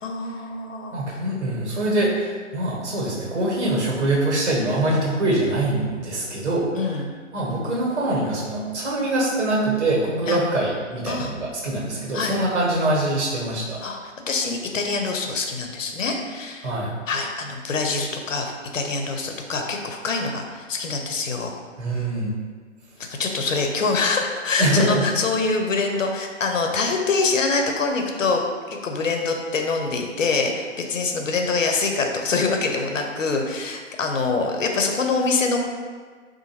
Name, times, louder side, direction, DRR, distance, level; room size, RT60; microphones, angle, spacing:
voice 1, 0.0-1.0 6.7-7.1 10.3-10.4 11.1-11.3 12.1-12.3 13.8-14.0 14.3-16.7 17.1-21.5 23.0-28.4 28.7-35.6, left 4 dB, 80° left, 3 dB, 0.6 m, -25 dB
voice 2, 0.9-7.0 7.3-13.8 16.6-16.9 21.8-22.4 24.6-25.0, right 1 dB, 60° right, -5 dB, 1.3 m, -24 dB
3.7 x 2.5 x 2.9 m, 1.6 s
hypercardioid pair, 140°, 38 cm